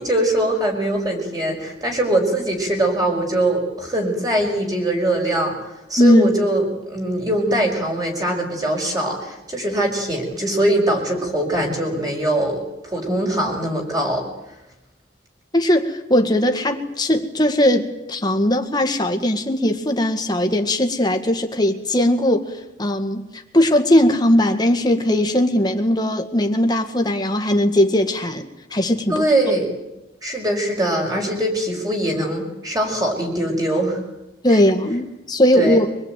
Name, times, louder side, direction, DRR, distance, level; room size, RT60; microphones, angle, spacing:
voice 1, 0.0-5.6 5.9-14.3 29.1-29.7 30.2-34.0 34.5-34.6 35.5-35.8, right 1 dB, 20° right, 1 dB, 5.7 m, -22 dB
voice 2, 6.0-6.3 15.5-29.2 34.4-35.9, left 1 dB, 20° left, 5 dB, 1.9 m, -19 dB
25.0 x 20.5 x 9.2 m, 0.96 s
head